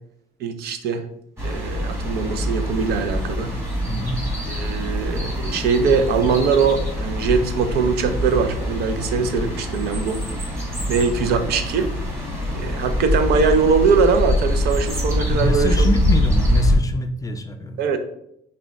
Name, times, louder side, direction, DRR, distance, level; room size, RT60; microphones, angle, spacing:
voice 1, 0.4-1.1 1.4-3.6 4.5-10.3 10.9-11.9 12.5-15.9 17.8-18.0, right 5 dB, 75° right, 9 dB, 0.5 m, -21 dB
sound 1, 1.4-16.8, equal, 15° right, 1.3 m, -24 dB
voice 2, 3.9-4.2 15.3-17.8, left 1 dB, 20° left, 7 dB, 0.4 m, -25 dB
4.9 x 2.2 x 3.5 m, 0.76 s
cardioid pair, 110°, 17 cm